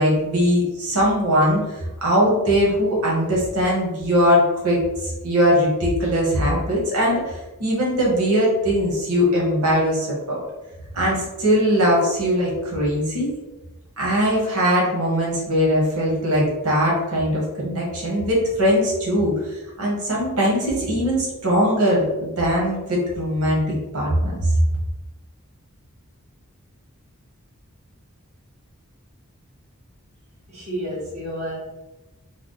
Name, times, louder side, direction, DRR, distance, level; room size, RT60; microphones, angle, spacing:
voice 1, 0.0-7.3 7.6-10.4 10.9-13.3 14.0-19.3 19.8-23.6 23.9-24.3, equal, 85° right, -4 dB, 1.2 m, -20 dB
voice 2, 30.5-31.6, equal, 30° right, -7 dB, 1.1 m, -30 dB
3.4 x 2.2 x 3.9 m, 1.1 s
head